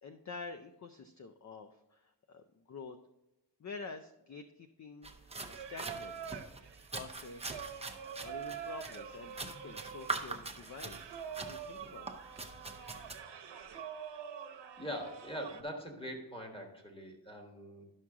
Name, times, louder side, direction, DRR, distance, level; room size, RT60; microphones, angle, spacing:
voice 1, 0.0-3.0 3.6-6.5 6.9-7.6 8.2-12.1, left 4 dB, 40° left, 8 dB, 0.5 m, -48 dB
sound 1, 5.0-13.2, right 3 dB, 15° right, 0.6 m, -43 dB
Singing, 5.4-15.6, right 8 dB, 70° right, 0.9 m, -46 dB
voice 2, 14.8-17.8, equal, 10° left, 2 dB, 1.4 m, -42 dB
11.0 x 6.1 x 3.6 m, 0.92 s
wide cardioid pair, 140°, 43 cm